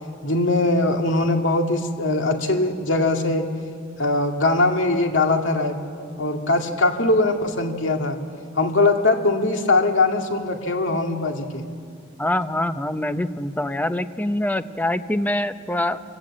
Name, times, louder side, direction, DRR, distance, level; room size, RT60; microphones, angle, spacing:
voice 1, 0.2-3.5 4.0-5.8 6.2-8.2 8.6-11.6, left 2 dB, 80° left, 3 dB, 2.2 m, -21 dB
voice 2, 12.2-16.0, left 1 dB, 10° left, 11 dB, 0.7 m, -24 dB
26.5 x 15.5 x 8.8 m, 2.2 s
head